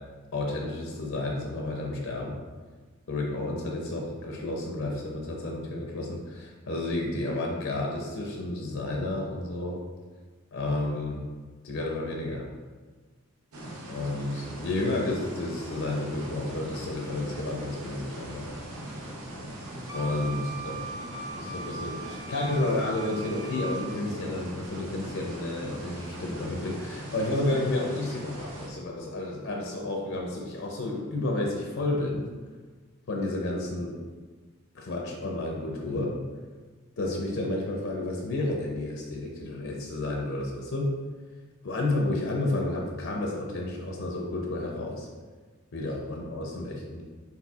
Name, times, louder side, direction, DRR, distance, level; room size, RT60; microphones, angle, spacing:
voice 1, 0.3-2.4 3.1-9.8 10.5-11.3 11.6-12.5 13.8-18.5 19.9-20.8 21.3-32.3 33.1-33.9 34.7-36.1 37.0-41.0 41.6-45.1 45.7-47.0, left 2 dB, 60° left, 0 dB, 0.6 m, -31 dB
sound 1, 13.5-28.7, right 1 dB, 90° right, 0.7 m, -40 dB
Wind instrument woodwind instrument, 19.9-24.0, right 3 dB, 15° right, 0.4 m, -39 dB
4.2 x 4.2 x 2.4 m, 1.4 s
head